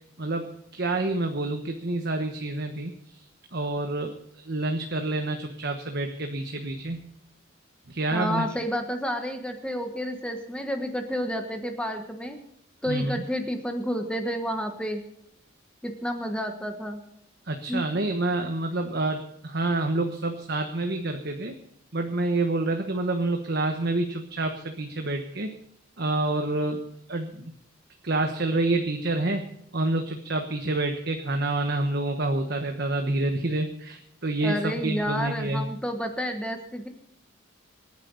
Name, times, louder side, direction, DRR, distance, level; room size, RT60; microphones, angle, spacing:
voice 1, 0.2-3.2 3.5-7.1 7.9-8.5 12.9-13.2 17.5-21.5 21.9-25.5 26.0-26.8 27.1-27.5 28.0-29.4 29.7-35.7, right 2 dB, 55° right, 4 dB, 1.3 m, -28 dB
voice 2, 8.1-12.4 12.8-15.0 15.8-17.0 17.7-17.9 34.4-36.9, equal, 5° left, 4 dB, 1.3 m, -30 dB
24.5 x 10.0 x 4.1 m, 0.74 s
head